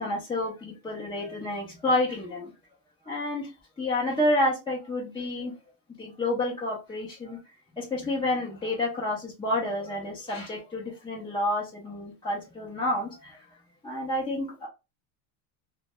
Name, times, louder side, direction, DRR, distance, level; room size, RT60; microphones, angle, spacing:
voice 1, 0.0-2.5 3.0-3.5 3.8-5.5 6.0-7.4 7.8-13.4 13.8-14.7, left 1 dB, 10° left, 0.5 m, -29 dB
2.2 x 2.2 x 2.8 m
supercardioid pair, 125°, 48 cm